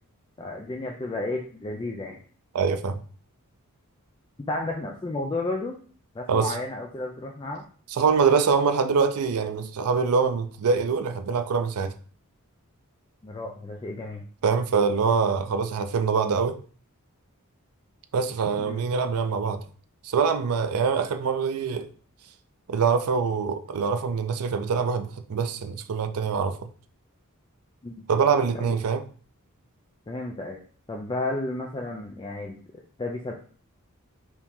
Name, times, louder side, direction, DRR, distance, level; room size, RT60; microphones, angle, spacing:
voice 1, 0.4-2.2 4.5-5.8 6.2-7.6 13.2-14.2 18.6-18.8 27.8-27.9 28.5-28.7 30.1-30.6 30.9-32.6 33.0-33.3, left 2 dB, 20° left, 0.4 m, -32 dB
voice 2, 2.5-3.0 6.3-6.6 7.9-11.9 14.4-16.6 18.1-19.6 20.0-21.9 22.7-26.7 28.1-29.0, right 5 dB, 85° right, 0.4 m, -24 dB
4.6 x 2.7 x 3.6 m
head